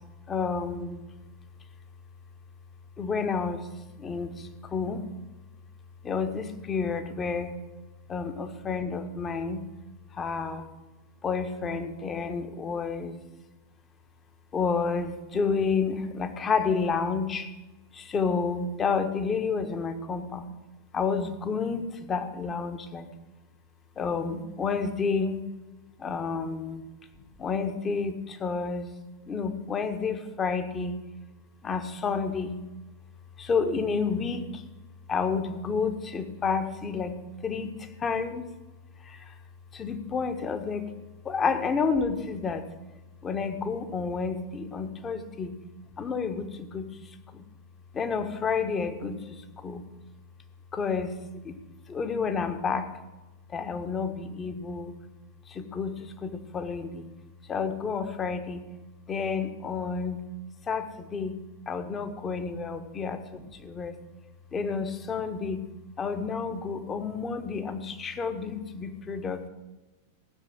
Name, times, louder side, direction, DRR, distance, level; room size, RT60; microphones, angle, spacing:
voice 1, 0.3-1.0 3.0-3.7 4.0-5.1 6.0-7.5 8.1-9.7 10.1-10.7 11.2-13.2 14.5-17.5 17.9-20.5 20.9-23.1 24.0-25.4 26.0-26.8 27.4-28.9 29.3-31.0 31.6-32.6 33.4-34.6 35.1-37.1 37.4-38.4 39.1-39.3 39.7-40.9 41.2-42.6 43.2-45.5 46.0-46.9 47.3-47.4 47.9-49.8 50.7-51.2 51.4-51.6 51.9-52.9 53.5-54.9 55.5-57.1 57.5-58.6 59.1-60.2 60.7-61.4 61.7-64.0 64.5-65.7 66.0-69.5, left 5 dB, 20° left, 8 dB, 1.3 m, -30 dB
16.0 x 6.9 x 7.7 m, 1.1 s
figure-of-eight pair, 90°, 0 cm